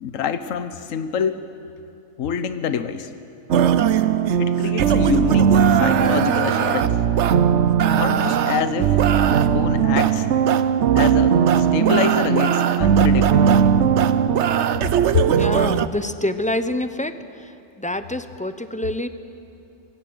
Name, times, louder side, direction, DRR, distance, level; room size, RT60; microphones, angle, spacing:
voice 1, 0.0-1.5 2.2-3.1 4.4-7.0 7.9-9.0 9.5-10.3 10.9-13.7 15.1-15.2, left 7 dB, 75° left, 10 dB, 1.4 m, -26 dB
sound 1, 3.5-15.9, right 8 dB, 60° right, 1.0 m, -18 dB
voice 2, 15.3-17.2 17.8-19.1, left 1 dB, 5° left, 10 dB, 0.8 m, -26 dB
27.5 x 23.0 x 7.9 m, 2.8 s
omnidirectional pair, 1.4 m